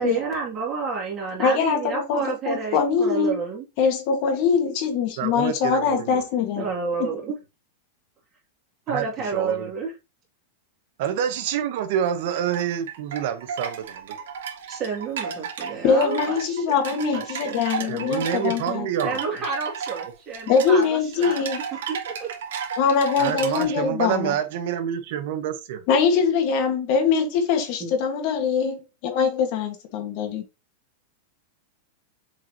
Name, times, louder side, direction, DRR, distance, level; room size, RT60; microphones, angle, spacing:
voice 1, 0.0-3.7 6.6-7.3 8.9-9.9 14.7-16.6 16.9-18.1 19.0-21.4 21.9-22.3 27.8-27.9, right 5 dB, 25° right, 2.7 m, -30 dB
voice 2, 1.4-3.3 3.8-6.6 7.0-7.1 15.8-18.9 20.5-21.6 22.8-24.4 25.9-30.4, left 6 dB, 45° left, 1.8 m, -22 dB
voice 3, 5.2-6.2 8.9-9.7 11.0-14.2 17.9-19.2 23.2-25.8, right 9 dB, 55° right, 1.2 m, -27 dB
sound 1, 12.2-23.6, right 7 dB, 80° right, 2.3 m, -34 dB
7.2 x 4.5 x 3.0 m
supercardioid pair, 165°, 0 cm